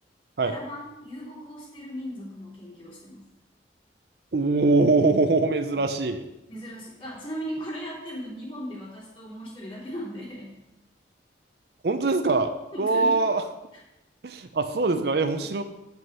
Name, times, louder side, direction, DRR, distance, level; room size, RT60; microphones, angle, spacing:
voice 1, 0.4-3.3 6.5-10.6 12.7-13.1 15.4-15.5, equal, 30° left, -6 dB, 2.8 m, -37 dB
voice 2, 4.3-6.2 11.8-12.5 12.8-13.4 14.2-15.6, right 3 dB, 60° right, 8 dB, 0.5 m, -22 dB
7.7 x 5.3 x 5.5 m, 0.94 s
head